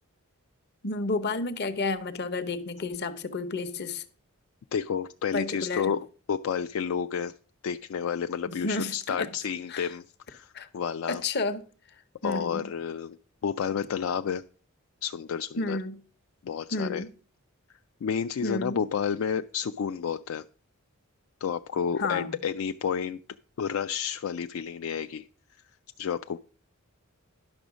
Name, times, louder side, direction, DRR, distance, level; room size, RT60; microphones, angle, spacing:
voice 1, 0.8-4.0 5.3-5.9 8.5-9.3 9.7-9.9 10.5-10.7 11.1-11.6 12.2-12.7 15.6-16.0 16.7-17.1 18.4-18.8 22.0-22.4, left 3 dB, 50° left, 0.9 m, -31 dB
voice 2, 4.7-7.3 7.6-11.2 12.2-14.4 15.0-15.8 16.4-17.0 18.0-20.4 21.4-23.2 23.6-25.3 26.0-26.4, left 7 dB, 70° left, 0.3 m, -30 dB
10.5 x 6.2 x 5.0 m
head